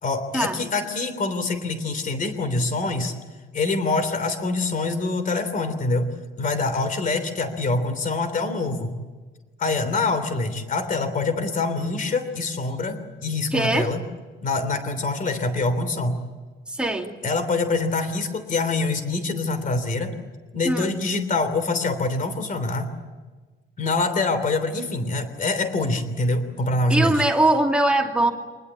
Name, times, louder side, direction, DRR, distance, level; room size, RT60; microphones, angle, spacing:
voice 1, 0.0-3.1 3.5-6.1 6.4-9.0 9.6-14.0 14.4-16.2 17.2-20.1 20.5-22.9 23.8-27.3, left 3 dB, 40° left, 10 dB, 3.2 m, -25 dB
voice 2, 13.5-13.9 16.7-17.1 20.6-21.0 26.9-28.3, right 2 dB, 5° right, 2 dB, 2.4 m, -21 dB
25.5 x 20.0 x 8.4 m, 1.3 s
wide cardioid pair, 170°, 21 cm